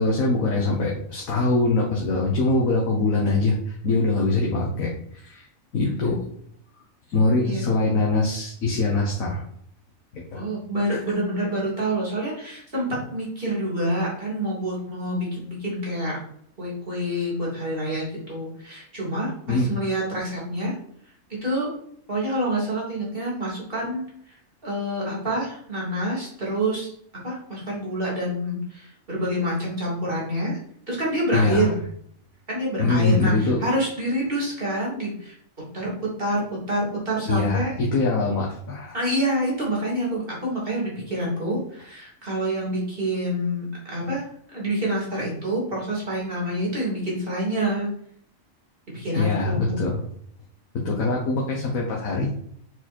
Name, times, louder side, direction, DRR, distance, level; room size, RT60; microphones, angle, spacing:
voice 1, 0.0-5.5 5.7-6.2 7.1-9.4 10.1-10.4 10.9-11.0 19.5-19.7 31.3-31.7 32.8-33.6 37.3-38.9 49.1-50.0 50.7-52.3, left 3 dB, 75° left, -2 dB, 1.6 m, -23 dB
voice 2, 10.3-16.2 16.6-20.7 21.3-21.7 22.1-24.0 24.6-26.9 27.2-30.6 30.9-31.8 32.5-35.3 35.7-35.9 36.2-36.4 36.7-37.7 38.9-44.2 44.5-47.9 48.9-49.8, right 1 dB, 40° right, -5 dB, 3.2 m, -27 dB
6.4 x 4.8 x 4.3 m, 0.67 s
omnidirectional pair, 1.4 m